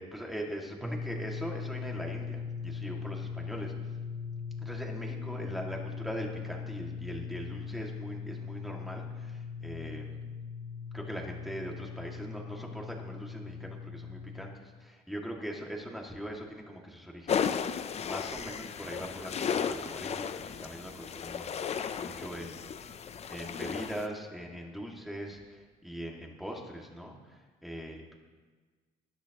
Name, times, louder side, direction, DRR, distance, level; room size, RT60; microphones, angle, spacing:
voice 1, 0.0-3.7 4.6-10.2 10.9-22.7 23.3-28.1, equal, ahead, -1 dB, 2.3 m, -41 dB
sound 1, 0.8-14.4, left 5 dB, 20° right, 1.2 m, -40 dB
sound 2, 17.3-24.1, left 7 dB, 40° left, 0.7 m, -34 dB
20.0 x 10.5 x 3.0 m, 1.4 s
cardioid pair, 110°, 17 cm